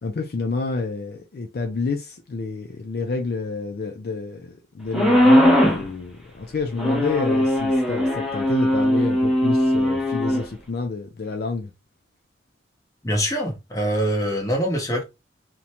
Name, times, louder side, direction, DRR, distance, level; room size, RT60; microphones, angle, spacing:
voice 1, 0.0-11.7, left 4 dB, 55° left, 0.4 m, -29 dB
sound 1, 4.9-5.9 6.8-10.4, left 1 dB, ahead, 0.5 m, -19 dB
voice 2, 13.0-15.0, equal, 20° left, 0.8 m, -24 dB
2.5 x 2.1 x 2.8 m
head